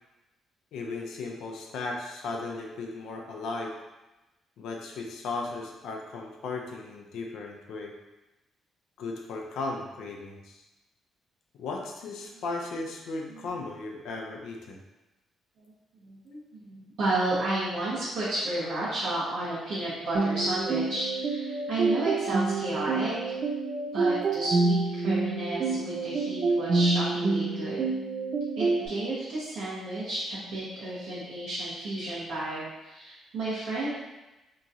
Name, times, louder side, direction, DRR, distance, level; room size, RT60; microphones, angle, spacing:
voice 1, 0.7-3.7 4.6-7.9 9.0-10.5 11.6-14.8, left 3 dB, 80° left, 1 dB, 0.4 m, -36 dB
voice 2, 16.0-23.1 23.9-27.8 28.6-33.9, right 2 dB, 80° right, -10 dB, 0.9 m, -32 dB
sound 1, 20.1-28.9, right 3 dB, 45° right, 0.3 m, -27 dB
2.9 x 2.4 x 2.7 m, 1.0 s
cardioid pair, 90°, 0 cm